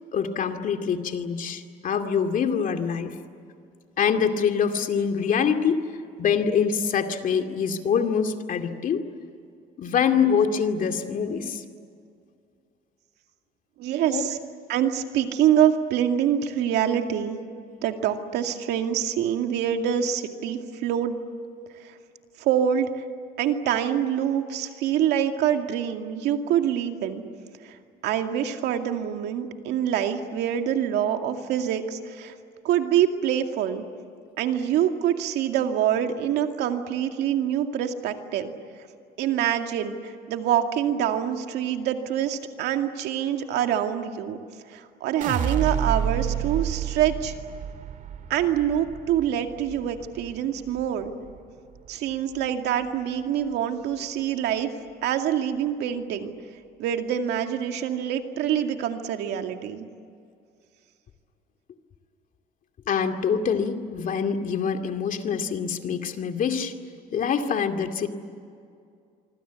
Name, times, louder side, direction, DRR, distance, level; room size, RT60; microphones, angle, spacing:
voice 1, 0.1-3.2 4.0-5.8 6.2-9.0 9.8-11.6 14.1-14.3 62.9-66.7 67.1-68.1, left 6 dB, 50° left, 6 dB, 2.4 m, -25 dB
voice 2, 13.8-14.4 14.7-17.4 17.8-21.2 21.8-21.9 22.4-23.0 23.4-27.2 27.6-32.3 32.6-33.8 34.4-38.5 39.2-44.4 44.7-47.3 48.3-51.1 51.9-54.7 55.0-56.3 56.8-59.9, right 10 dB, 80° right, 5 dB, 2.3 m, -25 dB
sound 1, 45.2-51.4 51.8-52.4, right 8 dB, 50° right, 1.8 m, -30 dB
26.0 x 25.0 x 8.3 m, 2.4 s
cardioid pair, 110°, 17 cm